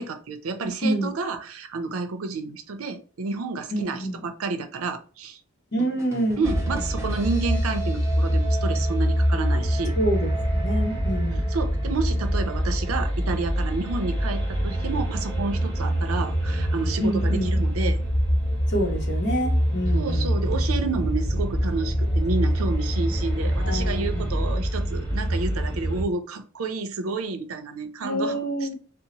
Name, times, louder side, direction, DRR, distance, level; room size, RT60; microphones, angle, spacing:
voice 1, 0.0-5.4 6.4-10.0 11.5-18.0 19.9-28.4, right 4 dB, 90° right, 0.5 m, -30 dB
voice 2, 0.6-1.1 3.7-4.2 5.7-6.4 10.0-11.4 17.0-17.6 18.7-20.4 23.6-24.5 28.0-28.7, right 1 dB, 55° left, 0.9 m, -27 dB
sound 1, 5.8-9.5, right 1 dB, 15° right, 0.4 m, -43 dB
sound 2, 6.4-26.0, equal, 10° left, 1.3 m, -25 dB
2.8 x 2.0 x 4.0 m
head